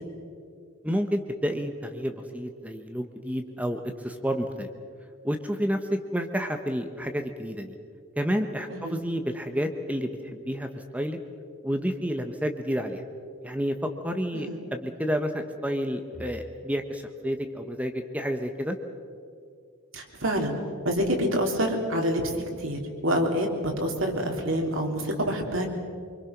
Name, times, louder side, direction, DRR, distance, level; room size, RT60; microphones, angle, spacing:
voice 1, 0.8-4.7 5.2-7.7 8.2-10.7 10.9-11.2 11.6-13.0 13.4-18.8, equal, 5° right, 6 dB, 1.0 m, -30 dB
voice 2, 8.7-9.0 14.3-14.6 19.9-20.6 20.9-25.7, equal, 65° right, 2 dB, 3.6 m, -27 dB
26.0 x 24.5 x 6.0 m, 2.3 s
head